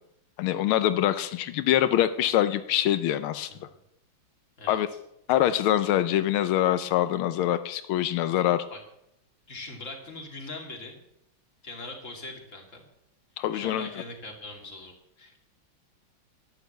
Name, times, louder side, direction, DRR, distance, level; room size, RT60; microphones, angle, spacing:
voice 1, 0.4-3.5 4.7-4.9 5.3-8.6 13.4-13.9, left 12 dB, 90° left, 12 dB, 1.5 m, -24 dB
voice 2, 9.5-11.0 11.6-12.8 13.5-15.4, left 2 dB, 35° left, 2 dB, 3.0 m, -41 dB
11.5 x 9.7 x 7.9 m, 0.79 s
omnidirectional pair, 2.2 m